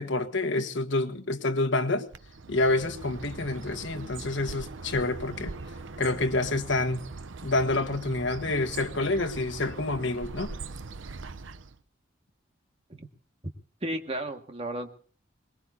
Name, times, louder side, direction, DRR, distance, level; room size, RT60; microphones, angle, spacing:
voice 1, 0.0-2.1 2.5-5.5 6.0-7.0 7.4-10.5, left 2 dB, 75° left, 1.5 m, -28 dB
Bird, 2.1-11.8, right 3 dB, 85° right, 0.7 m, -41 dB
voice 2, 13.8-14.9, right 1 dB, 35° right, 1.8 m, -34 dB
23.0 x 20.5 x 2.8 m
head